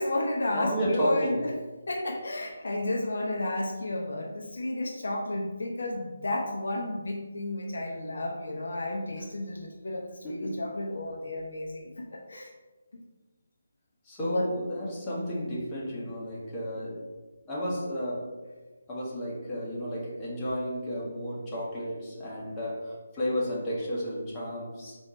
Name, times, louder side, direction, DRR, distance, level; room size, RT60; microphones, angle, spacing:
voice 1, 0.0-1.5 1.9-12.5 12.9-13.0 14.2-14.5, left 1 dB, 60° left, 1 dB, 0.6 m, -32 dB
voice 2, 0.5-1.5 10.2-10.6 14.0-17.1 17.4-18.4 18.9-25.0, equal, 15° left, -6 dB, 1.1 m, -32 dB
4.2 x 2.7 x 4.2 m, 1.3 s
figure-of-eight pair, 150°, 0 cm